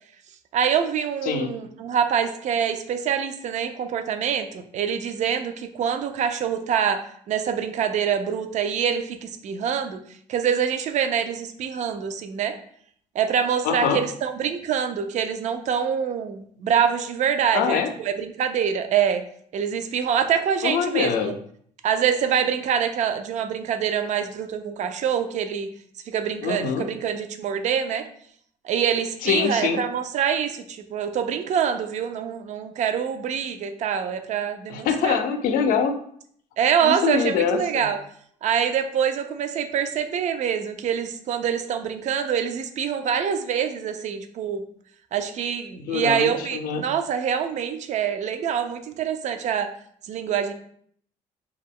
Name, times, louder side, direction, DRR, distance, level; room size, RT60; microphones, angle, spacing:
voice 1, 0.5-10.0 10.3-12.6 13.2-19.2 19.5-21.4 21.8-25.7 26.1-28.1 28.6-35.2 36.6-38.0 38.4-44.6 45.1-49.7 50.0-50.5, right 8 dB, 55° right, 8 dB, 0.4 m, -25 dB
voice 2, 1.2-1.5 13.6-14.0 17.5-17.9 20.6-21.3 26.4-26.9 29.2-29.8 34.7-35.9 36.8-37.9 45.8-46.8, left 7 dB, 70° left, 7 dB, 0.4 m, -24 dB
2.2 x 2.0 x 3.5 m, 0.63 s
supercardioid pair, 80°, 15 cm